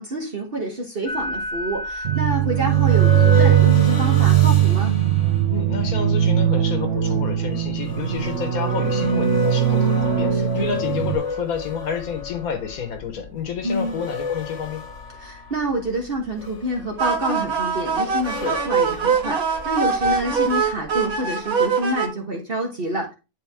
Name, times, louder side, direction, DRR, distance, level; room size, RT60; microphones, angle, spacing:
voice 1, 0.0-4.9 10.3-10.7 13.6-14.0 15.2-23.1, right 1 dB, 45° right, 1.5 m, -27 dB
sound 1, 1.1-20.6, left 4 dB, 60° left, 1.5 m, -32 dB
sound 2, 2.0-11.1, right 11 dB, 60° right, 1.0 m, -19 dB
voice 2, 5.5-14.8, left 6 dB, 90° left, 1.6 m, -29 dB
sound 3, 17.0-22.1, right 5 dB, 85° right, 1.8 m, -23 dB
10.5 x 3.7 x 3.5 m
omnidirectional pair, 1.5 m